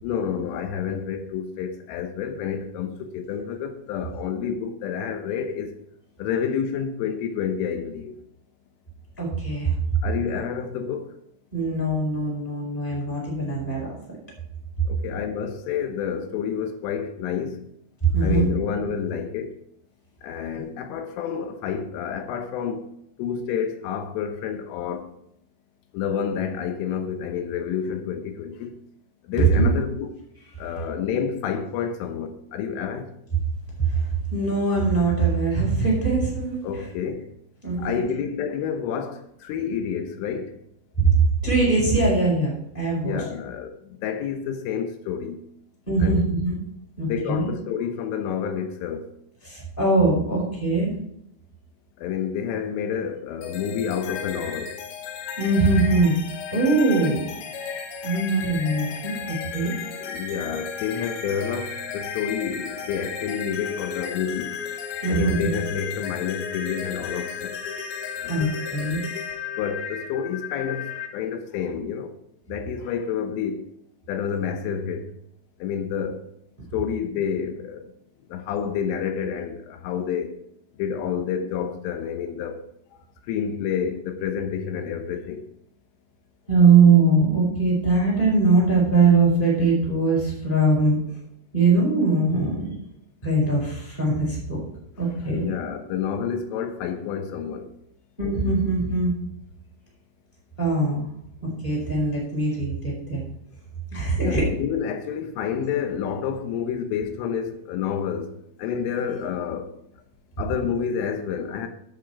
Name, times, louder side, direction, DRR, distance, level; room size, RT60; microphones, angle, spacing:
voice 1, 0.0-5.8 6.2-8.2 10.0-11.2 14.9-17.7 18.2-19.6 20.2-22.9 23.2-25.1 25.9-28.8 29.3-30.1 30.6-33.1 36.6-37.3 37.8-40.5 43.0-45.4 46.0-46.2 47.0-49.1 52.0-54.8 59.5-64.6 65.1-67.6 68.2-69.0 69.6-72.1 72.5-73.7 74.1-75.1 75.6-76.2 76.7-77.9 78.3-80.4 80.8-82.6 83.3-85.5 95.2-97.7 104.2-108.3 108.6-109.7 110.4-111.7, left 7 dB, 85° left, 3.6 m, -29 dB
voice 2, 9.2-9.7 11.5-13.9 18.0-18.5 29.3-29.7 33.8-34.0 34.3-36.8 37.6-38.0 41.0-41.1 41.4-43.2 45.9-46.6 47.0-47.5 49.4-50.9 55.4-56.1 56.5-57.2 58.0-59.7 65.0-65.3 68.3-69.0 86.5-91.0 91.5-92.7 93.2-94.6 95.0-95.5 98.2-99.1 100.6-101.1 101.6-103.2 103.9-104.5, right 3 dB, 10° left, 4.5 m, -21 dB
sound 1, 53.4-71.1, left 7 dB, 65° left, 2.9 m, -34 dB
12.0 x 7.5 x 4.7 m
omnidirectional pair, 5.5 m